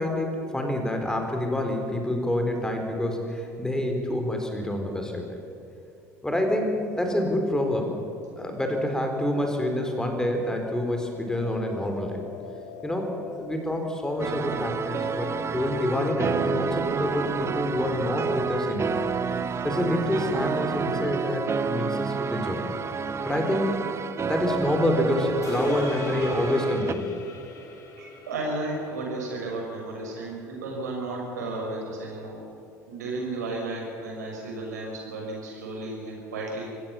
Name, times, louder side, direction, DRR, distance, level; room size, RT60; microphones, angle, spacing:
voice 1, 0.0-5.4 6.2-7.9 8.4-12.2 12.8-18.9 19.6-22.7 23.2-27.1, left 1 dB, 5° left, 3 dB, 4.3 m, -27 dB
sound 1, 7.0-16.0, left 6 dB, 80° left, 2.8 m, -45 dB
sound 2, 14.2-26.9, right 5 dB, 30° right, 1.0 m, -29 dB
sound 3, 25.4-29.9, left 3 dB, 35° left, 4.2 m, -39 dB
voice 2, 28.0-32.4 32.9-36.7, right 2 dB, 75° right, -1 dB, 6.2 m, -33 dB
25.0 x 16.5 x 7.2 m, 2.7 s
figure-of-eight pair, 65°, 9 cm